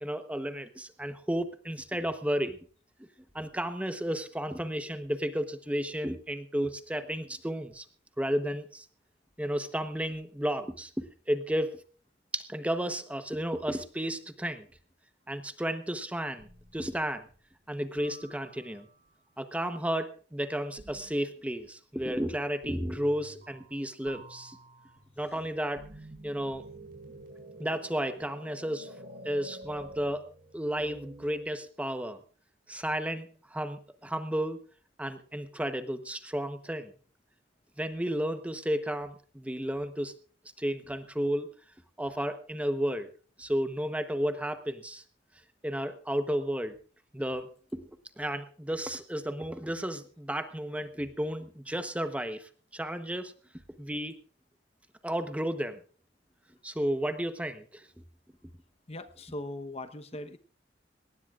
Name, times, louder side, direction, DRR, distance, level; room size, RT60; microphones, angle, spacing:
voice 1, 0.0-2.6 3.3-7.8 8.2-8.9 9.4-11.8 12.3-14.7 15.3-17.3 17.7-18.9 19.4-24.6 25.2-25.9 26.2-26.6 27.6-28.9 29.2-30.2 30.5-32.2 32.7-34.6 35.0-36.9 37.8-40.1 40.6-41.5 42.0-43.1 43.4-45.0 45.6-46.8 47.1-47.9 48.2-53.3 53.8-54.2 55.0-55.8 56.6-57.9, equal, 10° right, 9 dB, 0.9 m, -33 dB
sound 1, 16.4-17.2 18.0-19.0 20.8-21.3 22.6-23.8 24.1-31.4, right 1 dB, 55° right, 4.7 m, -49 dB
voice 2, 58.9-60.4, left 1 dB, 35° left, 10 dB, 1.0 m, -40 dB
20.0 x 18.5 x 2.4 m, 0.40 s
head